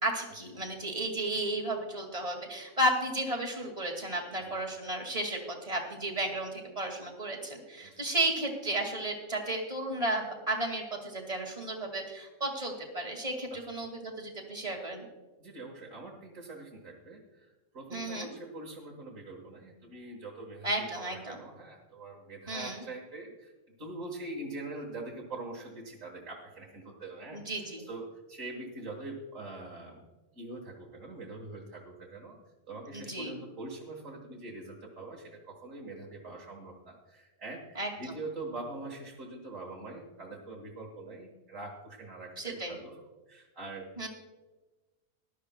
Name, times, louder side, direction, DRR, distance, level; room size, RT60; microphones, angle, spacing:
voice 1, 0.0-15.0 17.9-18.3 20.6-21.4 22.5-22.8 27.3-27.8 32.9-33.3 37.8-38.1 42.4-42.8 44.0-44.1, right 1 dB, 25° right, 1 dB, 2.1 m, -33 dB
voice 2, 15.4-23.5 23.8-30.0 30.3-32.4 32.7-43.0 43.3-44.1, right 2 dB, 65° right, -3 dB, 1.9 m, -43 dB
19.0 x 12.5 x 2.2 m, 1.2 s
omnidirectional pair, 1.4 m